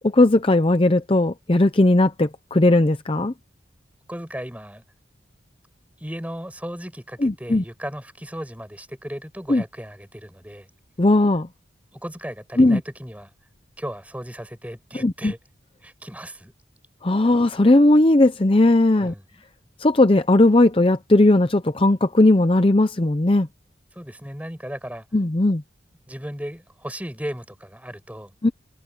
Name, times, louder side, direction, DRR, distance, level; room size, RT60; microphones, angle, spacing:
voice 1, 0.1-3.3 7.2-7.6 9.5-9.6 11.0-11.5 12.6-12.8 15.0-15.3 17.0-19.1 19.8-23.5 25.1-25.6 28.4-28.5, left 2 dB, 30° left, 0.6 m, -17 dB
voice 2, 4.1-4.8 6.0-10.7 11.9-13.3 13.8-15.4 15.8-16.5 18.9-19.2 23.9-25.1 26.1-28.3, equal, 10° right, 5.8 m, -36 dB
head